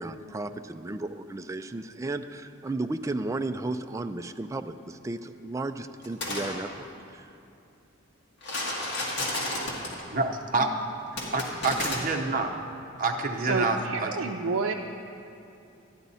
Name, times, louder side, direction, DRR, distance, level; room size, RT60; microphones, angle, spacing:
voice 1, 0.0-7.3, right 2 dB, 15° right, 8 dB, 0.3 m, -34 dB
sound 1, 6.0-6.5 8.4-10.0 11.2-12.0, left 2 dB, 60° left, 1.9 m, -31 dB
voice 2, 10.1-10.7 11.3-12.6 13.0-14.1, right 3 dB, 40° right, 4 dB, 0.8 m, -27 dB
voice 3, 13.4-14.7, right 4 dB, 85° right, 0 dB, 0.5 m, -29 dB
13.0 x 10.0 x 4.1 m, 2.6 s
head